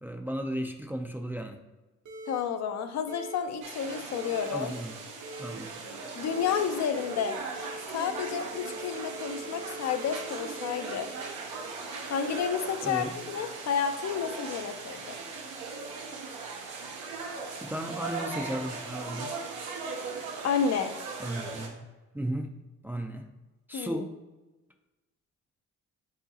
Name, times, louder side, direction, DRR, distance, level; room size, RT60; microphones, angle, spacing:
voice 1, 0.0-1.6 4.5-4.9 5.4-5.7 12.8-13.1 17.6-19.3 21.2-21.9 22.1-22.5 22.8-23.3 23.7-24.1, right 1 dB, 5° right, 4 dB, 0.3 m, -35 dB
sound 1, 2.1-2.4 3.1-3.4 4.1-4.5 5.2-5.5 6.3-6.6 7.0-7.8 8.1-11.8, right 2 dB, 70° right, 1.1 m, -43 dB
voice 2, 2.3-4.7 6.2-7.4 7.9-11.1 12.1-15.2 20.4-20.9 23.7-24.0, left 7 dB, 65° left, 8 dB, 0.5 m, -30 dB
sound 2, 3.6-21.7, right 4 dB, 90° right, 0.9 m, -39 dB
4.7 x 3.8 x 2.8 m, 1.1 s
cardioid pair, 90°, 30 cm